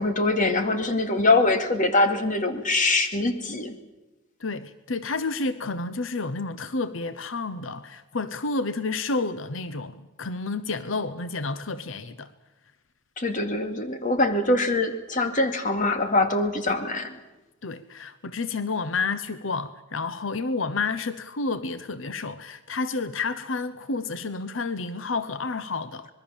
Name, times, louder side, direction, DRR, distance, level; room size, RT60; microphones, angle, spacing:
voice 1, 0.0-3.8 13.2-17.2, left 2 dB, 40° left, 2.4 m, -23 dB
voice 2, 4.4-12.3 17.6-26.1, left 3 dB, 85° left, 0.9 m, -30 dB
26.0 x 21.5 x 7.3 m
head